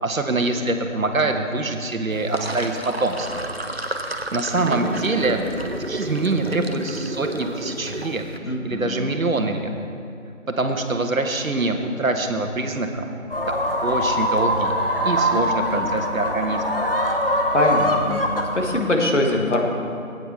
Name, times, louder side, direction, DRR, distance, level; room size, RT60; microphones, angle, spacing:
voice 1, 0.0-3.4 4.3-5.4 5.9-8.2 8.6-9.7 10.6-13.1 13.5-14.7 15.0-16.8, right 2 dB, 70° right, 5 dB, 1.1 m, -24 dB
Sink (filling or washing), 2.1-8.4, right 1 dB, 50° right, 0.5 m, -30 dB
voice 2, 8.4-9.1 15.3-15.9 17.5-18.2 18.5-19.6, left 1 dB, 55° left, 1 dB, 1.4 m, -23 dB
sound 1, 13.3-18.9, equal, 40° left, 0.7 m, -23 dB
14.0 x 9.0 x 3.2 m, 2.5 s
figure-of-eight pair, 175°, 42 cm